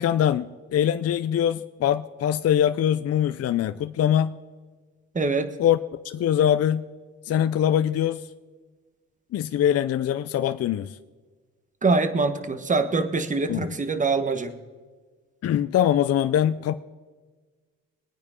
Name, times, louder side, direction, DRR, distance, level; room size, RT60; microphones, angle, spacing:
voice 1, 0.0-4.4 5.6-5.8 6.0-6.8 7.3-8.2 9.3-11.0 13.5-13.7 15.4-16.7, left 10 dB, 55° left, 0.6 m, -23 dB
voice 2, 5.1-5.5 11.8-14.5, right 3 dB, 25° right, 1.3 m, -24 dB
23.0 x 9.4 x 3.7 m
cardioid pair, 90°, 30 cm